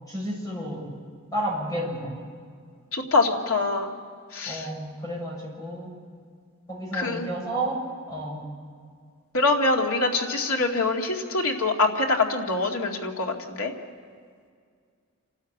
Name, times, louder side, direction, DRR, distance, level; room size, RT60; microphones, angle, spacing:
voice 1, 0.1-0.8 1.3-2.1 4.5-5.9 6.7-7.8 8.1-8.4, right 1 dB, 15° left, -3 dB, 7.5 m, -31 dB
voice 2, 2.9-3.9 4.3-4.7 6.9-7.3 9.3-13.7, left 3 dB, 85° left, 1 dB, 2.3 m, -24 dB
28.5 x 13.0 x 8.5 m, 2.1 s
head